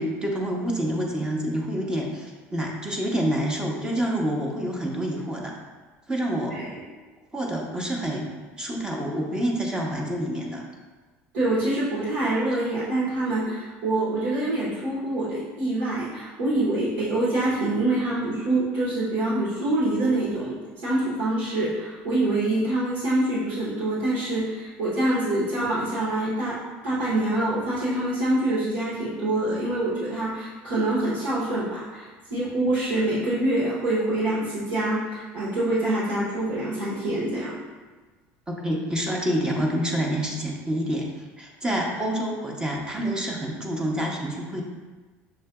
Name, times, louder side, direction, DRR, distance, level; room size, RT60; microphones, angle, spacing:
voice 1, 0.0-5.5 6.1-6.6 7.3-8.3 8.6-10.6 38.5-41.1 41.4-44.6, right 1 dB, 15° right, -1 dB, 0.7 m, -27 dB
voice 2, 11.3-20.6 20.8-26.6 26.8-37.6, right 1 dB, 85° right, -9 dB, 1.1 m, -25 dB
6.5 x 2.5 x 2.2 m, 1.3 s
supercardioid pair, 120°, 6 cm